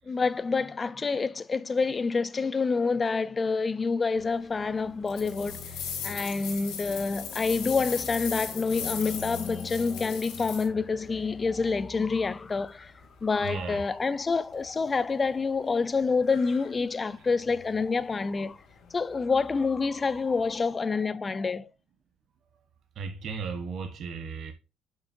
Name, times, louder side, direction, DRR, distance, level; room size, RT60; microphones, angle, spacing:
voice 1, 0.1-5.8 6.0-12.9 13.2-18.6 18.9-21.7, left 4 dB, 20° left, 0.4 m, -27 dB
sound 1, 4.1-20.7, left 3 dB, 45° left, 2.3 m, -48 dB
sound 2, 5.1-10.6, left 8 dB, 80° left, 3.1 m, -37 dB
voice 2, 13.4-13.9 23.0-24.5, right 5 dB, 45° right, 1.1 m, -35 dB
7.1 x 6.6 x 2.6 m
cardioid pair, 170°, 0 cm